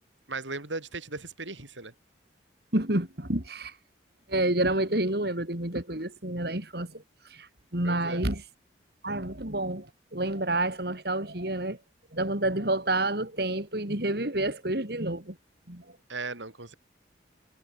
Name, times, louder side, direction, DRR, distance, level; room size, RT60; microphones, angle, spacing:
voice 1, 0.3-1.9 7.8-8.2 16.1-16.7, right 3 dB, 85° right, 4.4 m, -37 dB
voice 2, 2.7-3.7 4.3-7.0 7.3-7.5 7.7-8.4 9.0-11.8 12.1-15.3 15.7-15.8, right 1 dB, 55° right, 3.3 m, -29 dB
head